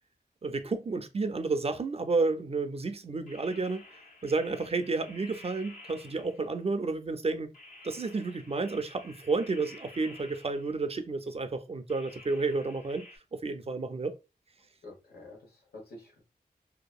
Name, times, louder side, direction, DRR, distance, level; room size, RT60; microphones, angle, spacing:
voice 1, 0.4-3.8 4.2-7.5 7.8-14.1, right 3 dB, 40° right, 0.4 m, -31 dB
sound 1, 3.3-6.7 7.5-10.9 11.9-13.2, left 2 dB, 55° left, 0.9 m, -52 dB
voice 2, 14.8-16.2, left 2 dB, 85° left, 1.1 m, -48 dB
2.7 x 2.3 x 2.3 m
cardioid pair, 55°, 16 cm